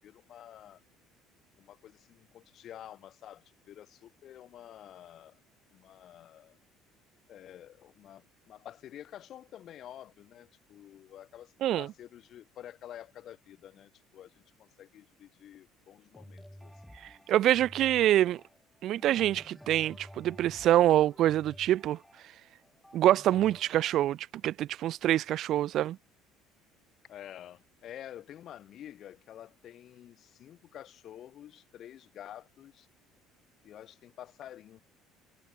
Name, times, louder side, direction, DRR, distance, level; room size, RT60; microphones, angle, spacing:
voice 1, 0.0-0.8 1.6-5.4 5.7-6.6 7.3-16.7 27.1-32.9 33.6-34.8, left 11 dB, 55° left, 7.4 m, -49 dB
sound 1, 16.1-24.1, equal, 5° left, 4.1 m, -52 dB
voice 2, 17.3-18.4 18.8-22.0 22.9-24.2 24.4-26.0, right 13 dB, 60° right, 0.5 m, -25 dB
supercardioid pair, 95°, 0 cm